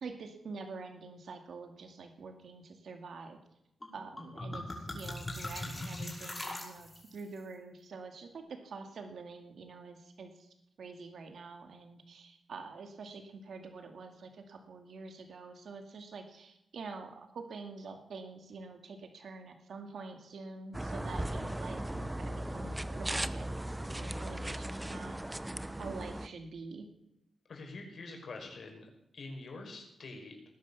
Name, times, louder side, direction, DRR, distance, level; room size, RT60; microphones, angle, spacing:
voice 1, 0.0-3.4 3.9-10.5 10.8-25.4 25.8-26.9, right 4 dB, 80° right, 5 dB, 2.2 m, -46 dB
sound 1, 3.8-3.9 4.2-7.2, left 1 dB, 20° left, 5.8 m, -40 dB
sound 2, 20.7-26.3, right 1 dB, 15° right, 0.9 m, -37 dB
voice 2, 27.5-28.9 29.1-30.4, left 3 dB, 70° left, 2 dB, 5.3 m, -45 dB
19.5 x 10.5 x 7.0 m, 0.82 s
cardioid pair, 80°, 0 cm